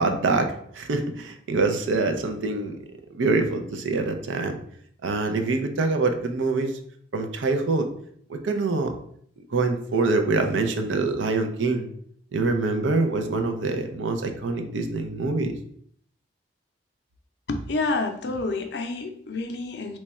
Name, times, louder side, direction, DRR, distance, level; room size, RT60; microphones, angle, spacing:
voice 1, 0.0-2.8 3.1-4.6 5.0-6.8 7.1-7.9 8.3-8.9 9.5-11.9 12.3-15.6, right 3 dB, 85° right, 6 dB, 0.5 m, -25 dB
voice 2, 17.5-20.0, left 3 dB, 60° left, 5 dB, 0.5 m, -28 dB
3.1 x 2.3 x 4.1 m, 0.65 s
head